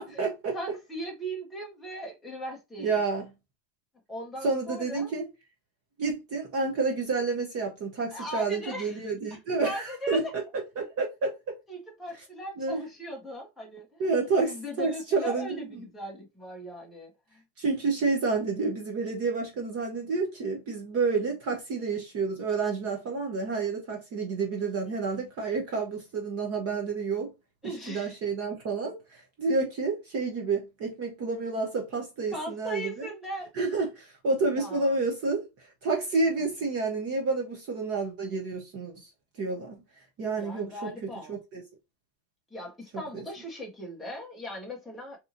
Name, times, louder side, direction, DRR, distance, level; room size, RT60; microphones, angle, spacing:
voice 1, 0.0-0.6 2.8-3.3 4.4-5.3 6.0-10.4 10.8-11.6 12.6-12.8 14.0-15.8 17.6-27.3 27.6-33.1 33.5-39.1 39.4-39.8 40.2-41.6 43.1-43.2, right 4 dB, 30° right, 0.7 m, -29 dB
voice 2, 0.5-2.9 4.1-5.1 8.1-9.1 9.6-10.3 11.7-17.4 27.6-28.2 32.3-33.5 34.5-34.9 40.4-41.4 42.5-45.2, equal, ahead, 0.4 m, -39 dB
3.8 x 2.9 x 2.5 m
cardioid pair, 165°, 49 cm